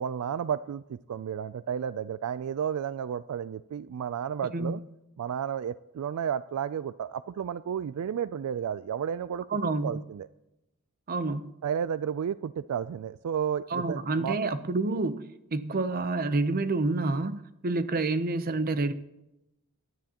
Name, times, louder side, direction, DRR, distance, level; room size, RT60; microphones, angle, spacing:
voice 1, 0.0-4.8 5.2-9.4 9.8-10.3 11.6-14.4, right 8 dB, 70° right, 0.3 m, -32 dB
voice 2, 9.5-10.0 11.1-11.5 13.7-15.2 15.5-18.9, right 3 dB, 40° right, 0.7 m, -28 dB
21.5 x 10.0 x 2.9 m
head